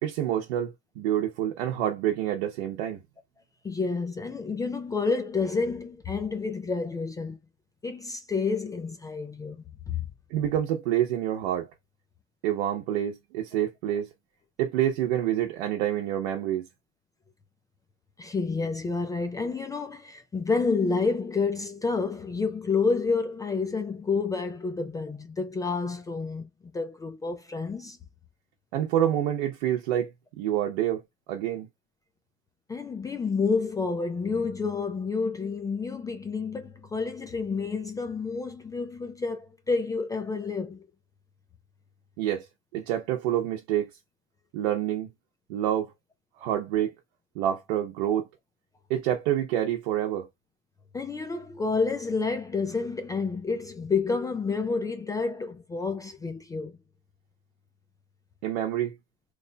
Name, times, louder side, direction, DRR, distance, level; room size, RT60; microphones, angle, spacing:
voice 1, 0.0-3.0 10.3-11.7 12.4-14.1 14.6-16.7 28.7-30.1 30.4-31.0 31.3-31.7 42.2-42.5 42.7-43.9 44.5-45.1 45.5-45.9 46.4-46.9 47.3-48.3 48.9-50.3 58.4-58.9, right 11 dB, 75° right, 0.9 m, -27 dB
voice 2, 3.6-7.4 7.8-10.1 18.2-26.5 26.7-28.0 32.7-40.9 48.1-48.2 50.9-56.7, left 4 dB, 10° left, 0.4 m, -29 dB
3.1 x 2.1 x 3.9 m
supercardioid pair, 140°, 32 cm